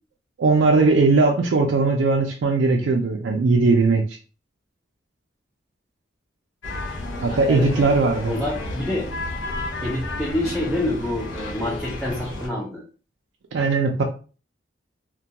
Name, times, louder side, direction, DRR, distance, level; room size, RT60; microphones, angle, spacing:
voice 1, 0.4-4.0 7.2-8.3 13.5-14.0, right 3 dB, 80° right, 1 dB, 0.4 m, -19 dB
sound 1, 6.6-12.5, left 2 dB, 90° left, 0.6 m, -32 dB
voice 2, 7.3-7.9 8.3-9.1 9.8-12.8, left 1 dB, ahead, -6 dB, 0.5 m, -27 dB
2.2 x 2.2 x 2.8 m, 0.35 s
head